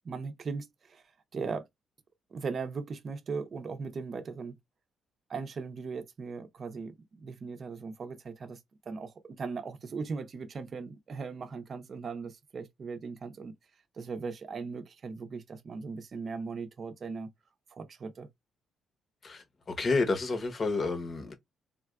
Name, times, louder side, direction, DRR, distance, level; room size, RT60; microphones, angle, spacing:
voice 1, 0.0-1.0 1.3-1.6 2.3-4.6 5.3-8.6 8.9-13.5 13.9-17.3 17.7-18.3, right 4 dB, 45° right, 0.7 m, -38 dB
voice 2, 19.2-21.3, left 3 dB, 40° left, 0.9 m, -30 dB
3.7 x 2.4 x 2.2 m
cardioid pair, 90°, 0 cm